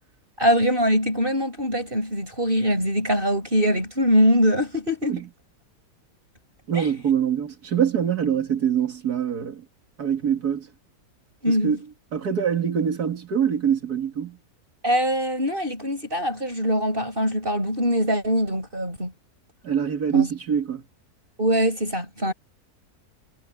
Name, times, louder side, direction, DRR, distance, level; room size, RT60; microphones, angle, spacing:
voice 1, 0.4-5.2 6.7-6.9 11.4-11.8 14.8-19.1 20.1-20.3 21.4-22.3, equal, 35° right, 7.5 m, -22 dB
voice 2, 6.7-9.6 10.0-10.7 11.5-11.8 12.1-14.4 19.6-20.8, right 8 dB, 80° right, 2.5 m, -24 dB
omnidirectional pair, 1.6 m